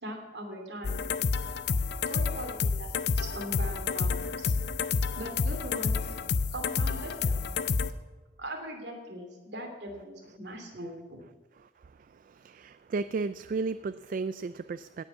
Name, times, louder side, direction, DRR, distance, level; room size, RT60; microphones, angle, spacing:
voice 1, 0.0-1.0 2.1-4.5 5.2-7.4 8.4-11.2, right 1 dB, 65° right, 2 dB, 2.8 m, -41 dB
sound 1, 0.8-7.9, left 5 dB, 60° left, 0.5 m, -29 dB
voice 2, 11.8-15.0, right 4 dB, 45° right, 13 dB, 0.3 m, -34 dB
17.0 x 6.1 x 7.2 m, 1.3 s
head